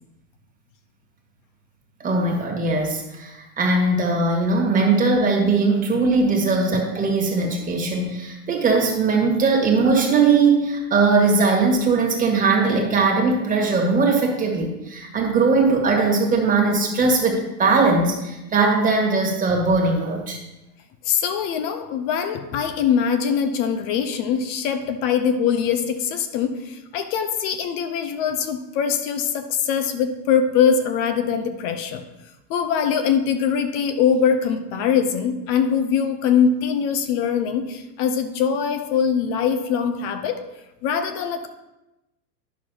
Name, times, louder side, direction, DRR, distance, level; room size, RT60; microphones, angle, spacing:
voice 1, 2.0-20.4, right 3 dB, 15° right, 0 dB, 1.6 m, -20 dB
voice 2, 21.0-32.0 32.5-40.4 40.8-41.5, left 7 dB, 25° left, 8 dB, 0.5 m, -22 dB
11.0 x 6.1 x 2.8 m, 0.97 s
figure-of-eight pair, 95°, 49 cm